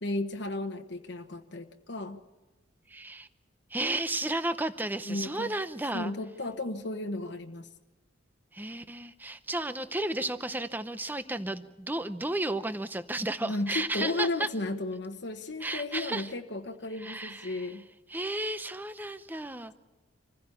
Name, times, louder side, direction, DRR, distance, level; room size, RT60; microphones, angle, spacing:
voice 1, 0.0-2.2 5.1-5.5 5.9-7.7 13.4-17.9, left 2 dB, 60° left, 4 dB, 1.1 m, -34 dB
voice 2, 2.9-3.3 3.7-6.1 8.5-14.5 15.6-16.3 17.0-17.7 18.1-19.7, right 2 dB, 10° right, 10 dB, 0.6 m, -33 dB
26.5 x 15.5 x 8.4 m, 1.2 s
head